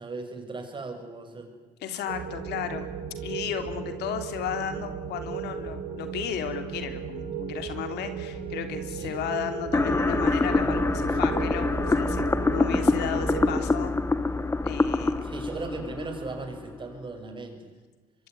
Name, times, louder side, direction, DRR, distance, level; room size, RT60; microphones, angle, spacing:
voice 1, 0.0-1.5 9.0-9.2 15.2-17.7, right 3 dB, 30° right, 5 dB, 6.6 m, -37 dB
voice 2, 1.8-2.9 3.2-13.9 14.6-15.2, left 9 dB, 80° left, 8 dB, 3.4 m, -34 dB
sound 1, 2.1-13.6, right 7 dB, 70° right, 6.3 m, -35 dB
sound 2, 9.7-16.8, left 3 dB, 15° left, 1.4 m, -25 dB
24.5 x 23.5 x 9.6 m, 1.3 s
cardioid pair, 110°, 17 cm